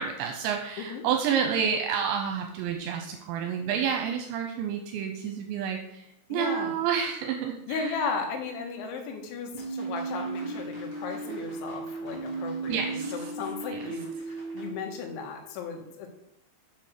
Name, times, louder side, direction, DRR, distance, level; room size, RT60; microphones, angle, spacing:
voice 1, 0.0-8.1 12.7-13.1 13.7-13.9, right 7 dB, 85° right, 3 dB, 3.0 m, -29 dB
voice 2, 6.3-6.7 7.7-16.1, left 5 dB, 85° left, 3 dB, 3.8 m, -35 dB
sound 1, 9.5-14.7, right 4 dB, 5° right, 1.7 m, -35 dB
7.0 x 6.2 x 6.6 m, 0.81 s
omnidirectional pair, 5.2 m